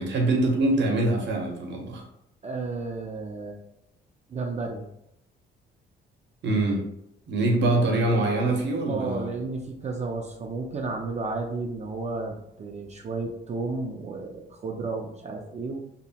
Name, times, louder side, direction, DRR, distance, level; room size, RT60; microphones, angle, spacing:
voice 1, 0.0-2.0 6.4-6.8 7.3-9.3, right 2 dB, 65° right, 1 dB, 0.8 m, -24 dB
voice 2, 2.4-3.6 4.3-4.8 8.9-15.8, right 3 dB, 35° right, 1 dB, 0.4 m, -32 dB
2.8 x 2.1 x 2.8 m, 0.77 s
cardioid pair, 90°, 20 cm